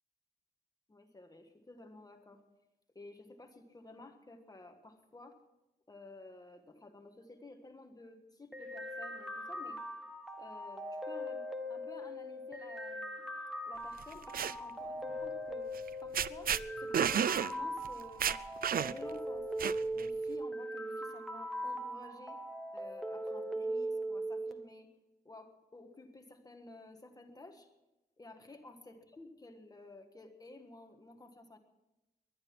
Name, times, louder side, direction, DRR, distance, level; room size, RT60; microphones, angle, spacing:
voice 1, 0.9-2.4 2.9-5.4 5.9-9.8 10.4-15.7 16.0-18.3 18.8-19.5 19.9-22.4 22.7-24.9 25.2-27.7 28.2-31.6, left 2 dB, 25° left, 5 dB, 1.4 m, -53 dB
sound 1, 8.5-24.5, right 1 dB, ahead, 1.3 m, -40 dB
sound 2, 14.0-14.5 15.8-15.9 16.1-16.6 16.9-17.5 17.8-17.9 18.2-19.1 19.6-20.1, right 8 dB, 65° right, 0.4 m, -31 dB
20.5 x 11.5 x 6.0 m, 0.99 s
wide cardioid pair, 155°, 16 cm